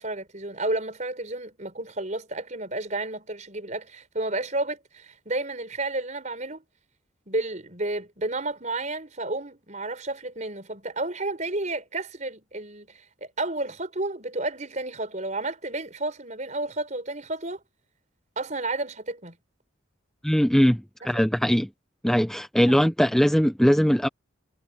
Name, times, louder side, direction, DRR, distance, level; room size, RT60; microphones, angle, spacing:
voice 1, 0.0-6.6 7.3-17.6 18.4-19.4, right 2 dB, 40° right, 5.3 m, -31 dB
voice 2, 20.2-21.7 22.0-24.1, equal, ahead, 0.5 m, -21 dB
head